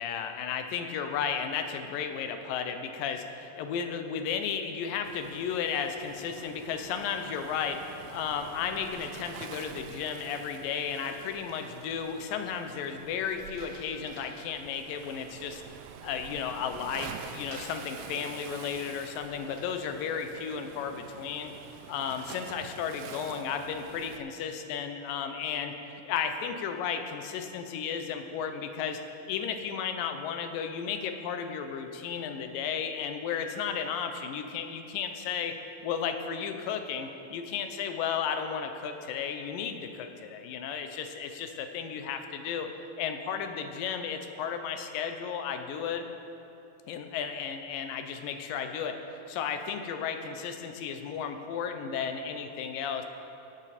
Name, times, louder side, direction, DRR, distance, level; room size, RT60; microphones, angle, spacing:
voice 1, 0.0-15.6 16.0-21.5 21.9-25.7 26.0-29.0 29.3-35.5 35.8-42.7 43.0-46.1 46.9-49.0 49.3-53.1, left 7 dB, 75° left, 7 dB, 2.3 m, -34 dB
Waves surf, 5.0-24.2, right 8 dB, 80° right, 2.3 m, -47 dB
sound 1, 10.1-11.0 13.2-14.5 14.9-15.0 17.0-18.3 19.3-20.5 20.9-21.5, right 1 dB, 25° right, 1.1 m, -50 dB
17.5 x 8.9 x 4.2 m, 2.9 s
omnidirectional pair, 4.2 m